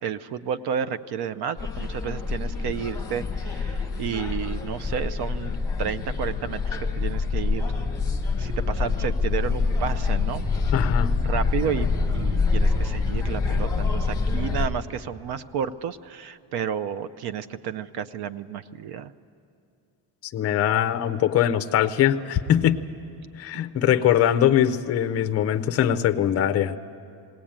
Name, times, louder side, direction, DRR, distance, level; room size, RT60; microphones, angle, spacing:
voice 1, 0.0-5.5 5.8-7.6 8.4-10.5 11.2-19.1 23.5-23.9, right 8 dB, 55° right, 15 dB, 0.6 m, -31 dB
sound 1, 1.6-14.7, left 4 dB, 10° left, 1.1 m, -26 dB
voice 2, 10.7-11.1 20.3-22.8 23.4-26.8, left 10 dB, 35° left, 9 dB, 0.5 m, -22 dB
19.5 x 18.5 x 8.8 m, 2.5 s
cardioid pair, 180°, 46 cm